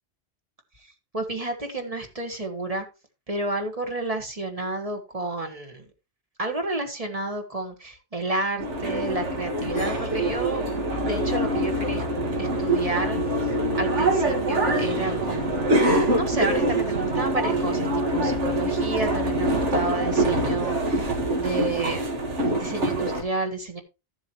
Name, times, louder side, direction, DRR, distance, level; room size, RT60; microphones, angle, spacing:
voice 1, 1.1-2.9 3.3-5.9 6.4-10.6 11.0-13.2 13.8-15.8 16.1-22.0 22.5-23.8, right 2 dB, 30° right, 5 dB, 1.5 m, -31 dB
sound 1, 8.6-23.2, right 1 dB, 70° right, 2.1 m, -24 dB
13.5 x 7.3 x 3.0 m, 0.28 s
omnidirectional pair, 1.2 m